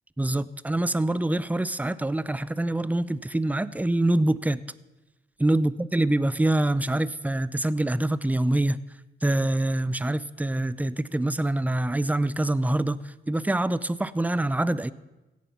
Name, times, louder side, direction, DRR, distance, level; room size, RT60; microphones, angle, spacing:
voice 1, 0.2-4.6 5.4-8.8 9.2-14.9, right 1 dB, 10° right, 17 dB, 0.5 m, -25 dB
16.5 x 9.3 x 5.9 m, 1.1 s
cardioid pair, 80°, 19 cm